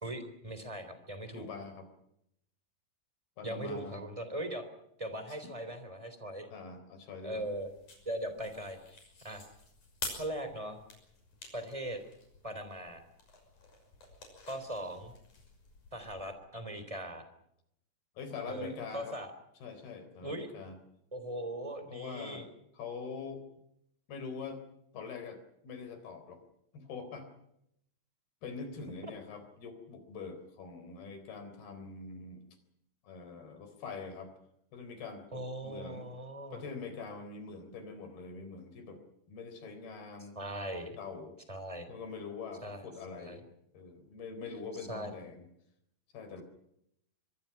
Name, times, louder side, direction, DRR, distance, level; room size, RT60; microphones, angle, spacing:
voice 1, 0.0-1.5 3.4-4.6 5.0-6.5 7.2-7.7 8.0-9.0 9.2-9.4 10.2-10.8 11.5-12.0 12.4-13.0 14.4-15.1 15.9-17.3 18.5-19.3 20.2-20.5 21.1-22.5 29.0-29.1 35.3-36.6 40.3-41.0 41.5-41.9 42.6-42.8 43.2-43.4 44.8-45.1, right 1 dB, 10° right, 9 dB, 3.0 m, -40 dB
voice 2, 1.3-1.9 3.4-4.0 5.3-5.4 6.5-7.4 18.2-19.2 19.6-20.8 21.9-22.5 22.7-23.4 24.1-24.6 24.9-26.4 26.7-27.3 28.4-32.4 33.0-34.3 34.7-36.1 36.5-39.0 39.3-40.3 40.7-41.4 41.9-43.5 43.7-45.5 46.1-46.4, left 5 dB, 60° left, 9 dB, 5.6 m, -44 dB
sound 1, 7.3-16.2, left 3 dB, 45° left, 7.4 m, -49 dB
25.0 x 24.0 x 5.8 m, 0.78 s
omnidirectional pair, 5.2 m